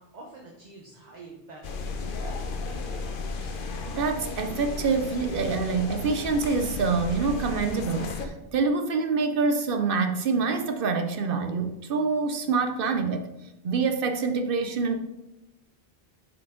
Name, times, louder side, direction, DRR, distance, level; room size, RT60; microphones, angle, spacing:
voice 1, 0.0-3.6, right 2 dB, 45° right, 1.0 m, -47 dB
sound 1, 1.6-8.3, left 3 dB, 60° left, 0.8 m, -34 dB
voice 2, 3.9-13.3 13.6-15.0, right 4 dB, 65° right, 0.7 m, -26 dB
7.9 x 4.5 x 3.6 m
omnidirectional pair, 1.0 m